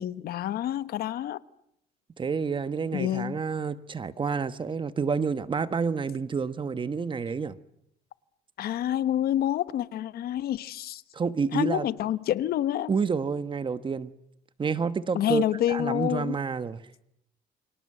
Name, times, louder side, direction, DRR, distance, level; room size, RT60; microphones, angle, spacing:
voice 1, 0.0-1.4 2.9-3.4 8.6-11.0 11.5-12.9 15.1-16.4, left 12 dB, 65° left, 1.1 m, -28 dB
voice 2, 2.2-7.6 11.1-11.9 12.9-14.1 14.6-16.8, right 5 dB, 30° right, 1.1 m, -29 dB
29.0 x 24.5 x 7.7 m
cardioid pair, 110°, 17 cm